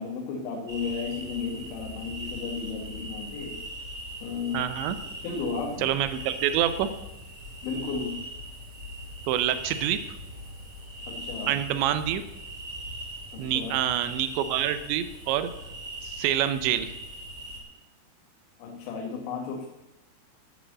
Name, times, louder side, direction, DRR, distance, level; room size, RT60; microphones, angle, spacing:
voice 1, 0.0-3.6 4.2-4.7 5.2-5.9 7.6-8.2 11.1-11.5 13.3-13.8 18.6-19.7, left 5 dB, 75° left, 1 dB, 3.7 m, -33 dB
sound 1, 0.7-17.6, right 1 dB, 15° right, 4.9 m, -40 dB
voice 2, 4.5-5.0 5.8-6.9 9.3-10.0 11.5-12.2 13.4-15.5 16.0-16.9, right 11 dB, 80° right, 11 dB, 2.9 m, -26 dB
11.0 x 9.2 x 7.6 m, 0.97 s
omnidirectional pair, 5.4 m